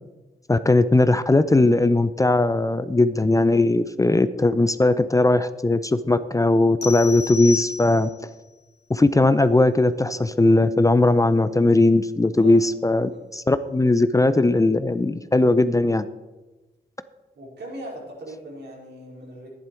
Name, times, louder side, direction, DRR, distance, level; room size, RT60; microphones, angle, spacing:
voice 1, 0.5-8.1 8.9-16.1, left 2 dB, 20° left, 13 dB, 0.5 m, -19 dB
sound 1, 6.8-8.3, left 5 dB, 70° left, 1.2 m, -32 dB
voice 2, 17.3-19.5, equal, 75° right, -3 dB, 4.5 m, -39 dB
11.5 x 10.5 x 4.5 m, 1.1 s
cardioid pair, 65°, 18 cm